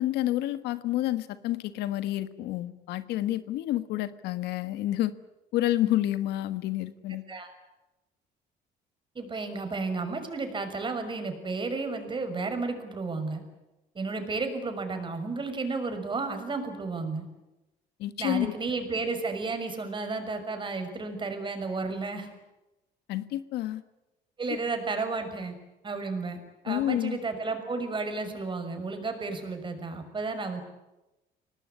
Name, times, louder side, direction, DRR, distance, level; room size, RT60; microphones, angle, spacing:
voice 1, 0.0-5.1 5.5-7.2 18.0-18.5 23.1-23.8 26.7-27.2, left 14 dB, 85° left, 13 dB, 1.5 m, -29 dB
voice 2, 9.1-13.4 13.9-17.2 18.2-22.3 24.4-25.5 25.8-30.6, right 3 dB, 30° right, 7 dB, 6.1 m, -32 dB
25.0 x 19.0 x 9.7 m, 0.99 s
cardioid pair, 110°, 17 cm